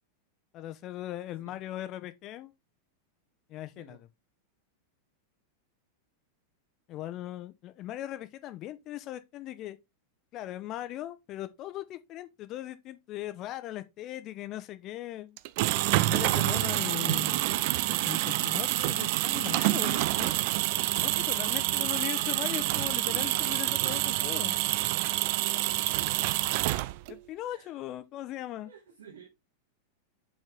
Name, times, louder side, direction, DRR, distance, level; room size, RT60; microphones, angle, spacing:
voice 1, 0.5-2.5 3.5-4.0 6.9-9.8 10.3-15.4 16.0-17.6 17.9-20.3 21.0-24.5 27.1-28.7, left 14 dB, 35° left, 0.8 m, -39 dB
sound 1, 15.4-27.2, right 17 dB, 45° right, 0.3 m, -27 dB
voice 2, 23.8-24.4 25.0-26.4 27.4-27.8 28.6-29.3, right 6 dB, 65° right, 2.3 m, -52 dB
6.1 x 4.3 x 3.7 m
figure-of-eight pair, 90°, 0 cm